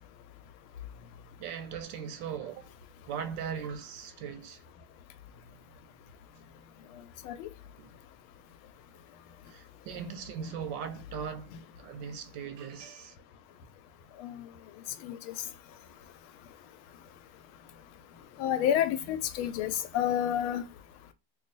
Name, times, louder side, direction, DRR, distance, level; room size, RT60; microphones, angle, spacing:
voice 1, 1.4-2.7 3.1-4.6 7.8-7.9 9.4-13.2, right 7 dB, 75° right, 1.1 m, -39 dB
voice 2, 18.4-20.6, left 10 dB, 90° left, 1.4 m, -29 dB
3.3 x 2.4 x 3.9 m
omnidirectional pair, 2.2 m